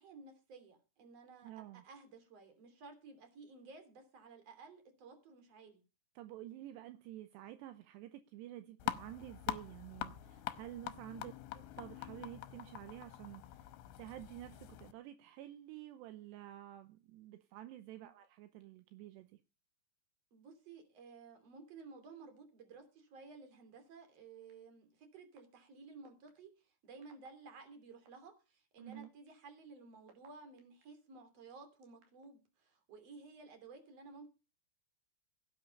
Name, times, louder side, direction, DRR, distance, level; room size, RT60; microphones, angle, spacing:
voice 1, 0.0-5.8 11.1-11.3 18.0-18.1 20.3-34.3, right 4 dB, 40° right, 3.6 m, -55 dB
voice 2, 1.4-1.8 6.2-13.7 14.0-19.4 28.8-29.1, right 14 dB, 80° right, 2.9 m, -50 dB
sound 1, 8.8-14.9, left 13 dB, 85° left, 3.0 m, -44 dB
sound 2, 24.5-24.6 25.4-25.5 26.0-26.3 27.0-27.3 28.1-28.2 28.8-30.8 31.5-32.3, right 6 dB, 60° right, 4.0 m, -64 dB
16.5 x 9.1 x 5.3 m
omnidirectional pair, 5.1 m